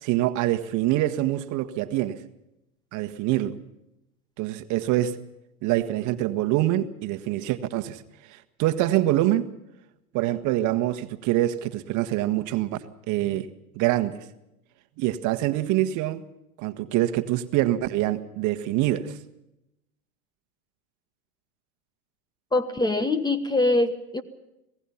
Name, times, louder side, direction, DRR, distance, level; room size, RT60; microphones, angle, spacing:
voice 1, 0.0-2.2 2.9-3.6 4.4-5.2 5.6-8.0 8.3-9.5 10.1-12.8 13.1-13.5 13.7-14.2 15.0-16.3 16.6-19.2, right 14 dB, 45° right, 10 dB, 1.4 m, -25 dB
voice 2, 22.5-24.2, left 2 dB, 10° left, 12 dB, 1.2 m, -23 dB
26.0 x 18.0 x 5.7 m, 0.87 s
hypercardioid pair, 110°, 42 cm